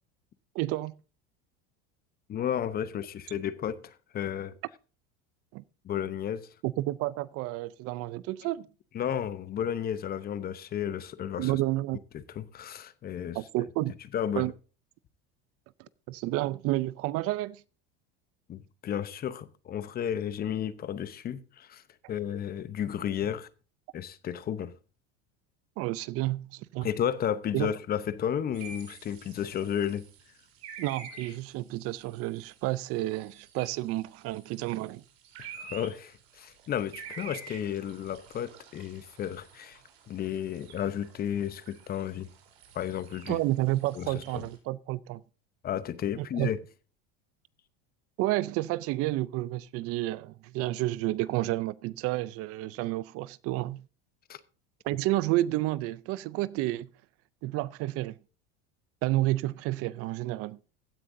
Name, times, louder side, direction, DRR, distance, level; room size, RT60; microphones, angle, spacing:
voice 1, 0.5-0.9 5.5-5.6 6.6-8.7 11.4-12.0 13.3-13.9 14.3-14.5 16.1-17.6 25.8-26.9 27.5-27.7 30.8-35.0 43.3-45.2 46.2-46.5 48.2-53.8 54.8-56.9 57.4-58.1 59.0-60.6, right 17 dB, 50° right, 0.5 m, -30 dB
voice 2, 2.3-4.5 5.8-6.5 8.9-11.6 12.1-13.4 14.1-14.5 18.5-21.8 22.1-23.5 23.9-24.7 26.8-30.1 35.5-39.8 40.1-42.3 42.7-43.4 43.9-44.4 45.6-46.6 54.3-54.4, left 9 dB, 30° left, 0.8 m, -33 dB
sound 1, 28.5-44.6, right 6 dB, 85° right, 3.8 m, -49 dB
15.5 x 9.7 x 2.7 m
supercardioid pair, 130°, 30 cm